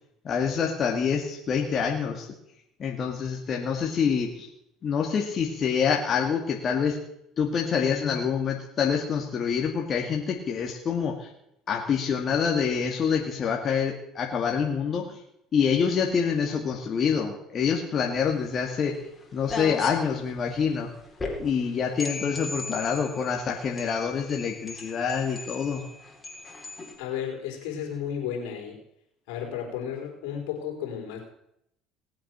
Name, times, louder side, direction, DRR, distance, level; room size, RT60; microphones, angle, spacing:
voice 1, 0.2-2.3 2.8-4.5 4.8-7.0 7.4-11.3 11.7-15.2 15.5-19.0 19.3-20.9 21.4-25.8, left 6 dB, 45° left, 1 dB, 2.0 m, -26 dB
sound 1, 18.2-26.9, left 3 dB, 25° left, 3.8 m, -38 dB
voice 2, 27.0-28.8 29.3-31.2, left 8 dB, 80° left, 1 dB, 4.1 m, -33 dB
19.0 x 7.6 x 6.1 m, 0.79 s
supercardioid pair, 85°, 0 cm